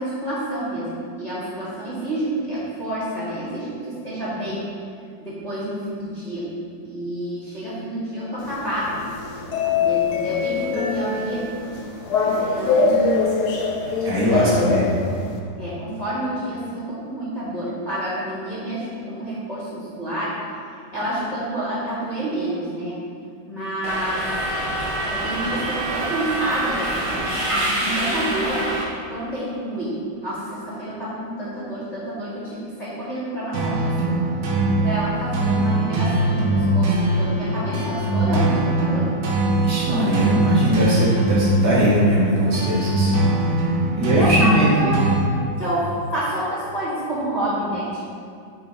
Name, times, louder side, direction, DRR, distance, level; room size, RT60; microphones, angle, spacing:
voice 1, 0.0-4.6 5.2-6.5 6.8-9.0 9.6-11.5 12.2-13.3 14.2-14.7 15.6-20.4 20.9-23.0 23.5-24.3 25.1-26.9 27.3-28.7 29.1-34.2 34.8-39.1 43.9-45.1 45.6-48.0, right 1 dB, 20° left, -10 dB, 1.8 m, -28 dB
sound 1, 8.4-15.4, left 4 dB, 65° left, 1.2 m, -23 dB
voice 2, 14.0-14.9 39.6-43.7 44.0-45.2, equal, 60° right, -7 dB, 1.8 m, -20 dB
Subway metro underground, 23.8-28.8, right 1 dB, 25° right, 0.8 m, -25 dB
sound 2, 33.5-45.2, right 2 dB, 90° right, 1.8 m, -22 dB
9.2 x 3.9 x 3.8 m, 2.3 s
omnidirectional pair, 2.0 m